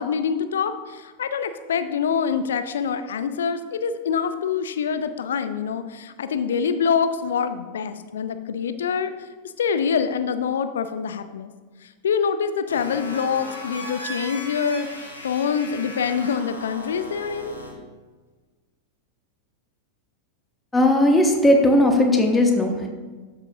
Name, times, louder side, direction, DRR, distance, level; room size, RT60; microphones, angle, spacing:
voice 1, 0.0-9.3 9.6-11.5 11.8-17.5, left 6 dB, 65° left, 11 dB, 0.5 m, -25 dB
sound 1, 12.7-17.7, equal, 85° left, 1.8 m, -37 dB
voice 2, 20.7-22.9, left 1 dB, 10° left, 2 dB, 1.0 m, -17 dB
13.0 x 6.2 x 2.7 m, 1.4 s
figure-of-eight pair, 90°, 0 cm